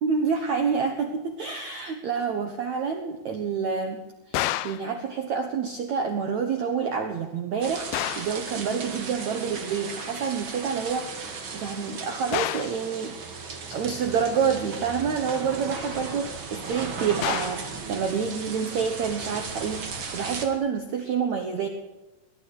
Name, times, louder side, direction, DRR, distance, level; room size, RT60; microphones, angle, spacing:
voice 1, 0.0-4.0 4.3-13.2 13.7-21.7, right 6 dB, 75° right, 5 dB, 1.7 m, -28 dB
sound 1, 4.3-4.9 7.9-8.4 12.3-12.8 17.2-17.7, left 15 dB, 80° left, 2.2 m, -29 dB
sound 2, 7.6-20.5, right 4 dB, 45° right, 1.8 m, -36 dB
18.5 x 11.0 x 6.4 m, 1.1 s
omnidirectional pair, 5.0 m